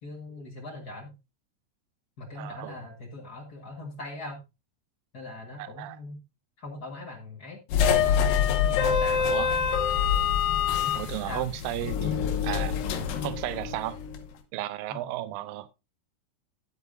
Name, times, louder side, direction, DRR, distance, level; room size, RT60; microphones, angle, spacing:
voice 1, 0.0-1.1 2.2-4.4 5.1-6.2 6.6-7.6 8.0-9.3 10.8-10.9 11.2-11.5 13.5-13.7 14.9-15.0, left 2 dB, 40° left, 1.6 m, -41 dB
voice 2, 2.4-2.8 5.6-6.0 9.3-9.5 11.0-12.8 13.2-14.0 14.5-15.7, right 15 dB, 85° right, 2.4 m, -34 dB
sound 1, 7.7-14.2, left 8 dB, 90° left, 2.8 m, -26 dB
12.5 x 8.2 x 2.7 m
omnidirectional pair, 4.0 m